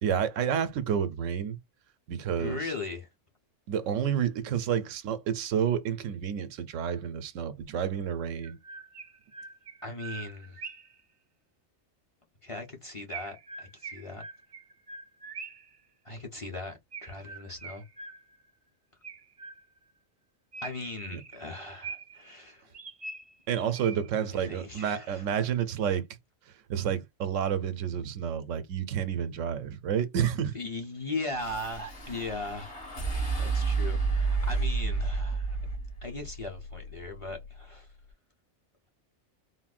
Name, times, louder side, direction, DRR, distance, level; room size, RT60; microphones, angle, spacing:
voice 1, 0.0-1.6 2.1-2.6 3.7-8.6 21.1-21.2 23.5-26.1 26.7-30.6, right 8 dB, 90° right, 1.0 m, -30 dB
voice 2, 2.4-3.1 9.8-10.6 12.4-14.2 16.0-17.8 20.6-22.7 24.2-25.3 30.5-32.8 33.4-35.6 36.0-37.9, left 2 dB, 30° left, 0.7 m, -38 dB
Chirp tweet, 8.4-11.0 13.1-15.8 16.9-18.5 19.0-19.9 20.5-22.3 22.7-24.3, right 4 dB, 50° right, 0.4 m, -44 dB
sound 1, 31.4-37.7, right 4 dB, 60° left, 2.0 m, -31 dB
4.0 x 2.1 x 2.4 m
omnidirectional pair, 1.3 m